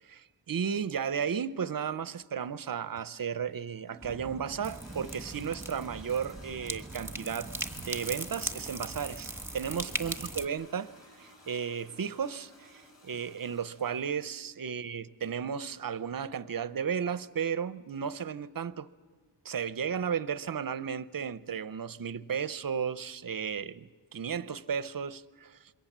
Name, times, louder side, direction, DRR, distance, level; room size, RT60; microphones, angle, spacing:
voice 1, 0.0-18.9 19.4-25.7, right 7 dB, 45° right, 0.7 m, -34 dB
Toilet flush, 3.3-14.4, left 1 dB, 35° left, 7.3 m, -56 dB
sound 1, 4.0-10.5, right 1 dB, 5° right, 1.4 m, -39 dB
27.0 x 22.0 x 7.4 m
wide cardioid pair, 95°, 49 cm